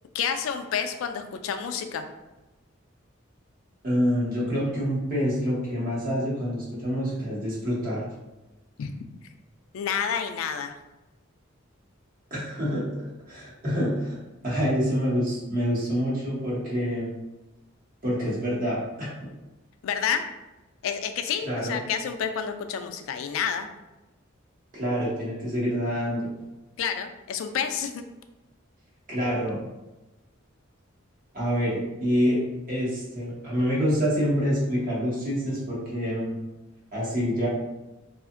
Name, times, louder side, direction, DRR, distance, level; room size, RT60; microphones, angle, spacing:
voice 1, 0.1-2.1 8.8-8.9 9.7-10.7 19.8-20.2 20.8-23.7 26.8-28.0, left 7 dB, 80° left, 8 dB, 0.3 m, -29 dB
voice 2, 3.8-8.0 12.3-12.8 13.3-14.2 14.4-17.1 18.0-19.1 21.5-21.8 24.7-26.3 29.1-29.6 31.3-32.4 32.7-36.4 36.9-37.5, equal, 45° right, -7 dB, 1.1 m, -26 dB
2.7 x 2.4 x 2.5 m, 1.1 s
head